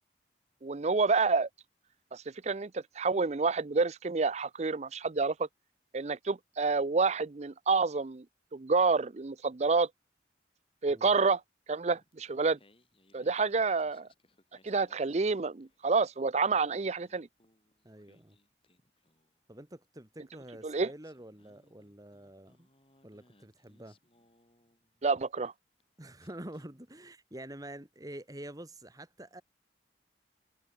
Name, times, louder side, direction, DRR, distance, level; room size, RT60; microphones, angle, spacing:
voice 1, 0.6-1.5 2.1-5.3 5.9-8.2 8.5-9.9 10.8-11.4 11.7-12.6 13.1-14.1 14.6-17.3 20.6-20.9 25.0-25.5, right 4 dB, 40° right, 0.5 m, -28 dB
Singing, 11.9-15.9 16.2-19.4 20.4-20.5 21.0-25.2 25.8-25.9 26.2-27.0, left 2 dB, 30° left, 6.9 m, -67 dB
voice 2, 17.8-18.4 19.5-22.7 23.0-24.0 26.0-29.4, right 1 dB, 20° right, 2.2 m, -47 dB
head